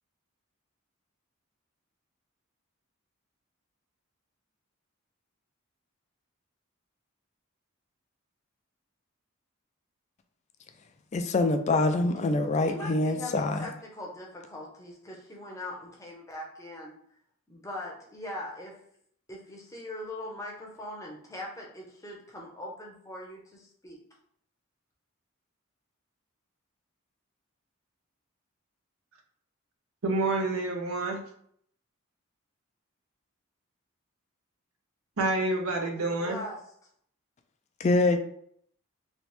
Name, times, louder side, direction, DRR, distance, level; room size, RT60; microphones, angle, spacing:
voice 1, 11.1-13.7 37.8-38.2, left 2 dB, 30° left, 7 dB, 0.3 m, -25 dB
voice 2, 12.7-17.0 17.5-18.8 19.3-24.0 36.0-36.6, left 1 dB, 15° left, -2 dB, 0.7 m, -41 dB
voice 3, 30.0-31.2 35.2-36.4, right 2 dB, 75° right, 2 dB, 0.7 m, -28 dB
3.2 x 3.0 x 3.0 m, 0.67 s
head